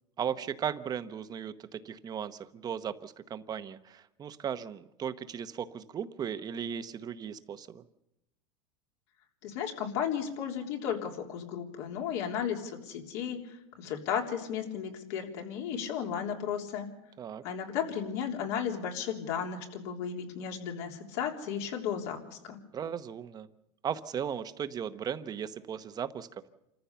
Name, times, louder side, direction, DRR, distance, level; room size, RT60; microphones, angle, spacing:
voice 1, 0.2-7.8 17.2-17.4 22.7-23.5 23.8-26.5, right 8 dB, 25° right, 11 dB, 0.9 m, -37 dB
voice 2, 9.4-16.9 17.4-22.6, left 8 dB, 65° left, 2 dB, 3.5 m, -34 dB
27.5 x 14.5 x 7.0 m, 0.90 s
supercardioid pair, 140°, 16 cm